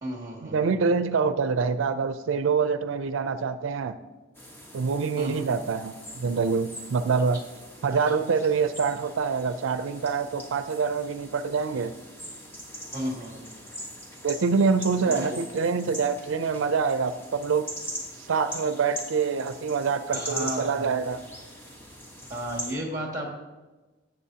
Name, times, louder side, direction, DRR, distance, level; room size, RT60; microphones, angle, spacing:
voice 1, 0.0-0.8 5.2-5.5 7.9-8.0 12.9-13.4 15.0-15.4 20.1-21.0 22.3-23.3, right 1 dB, 20° right, 0 dB, 2.0 m, -34 dB
voice 2, 0.5-4.0 4.7-7.4 7.8-11.9 14.2-17.6 18.3-21.2, right 5 dB, 85° right, 11 dB, 0.4 m, -25 dB
sound 1, 4.3-22.7, equal, 10° left, 1.2 m, -41 dB
14.0 x 7.9 x 2.8 m, 1.2 s
head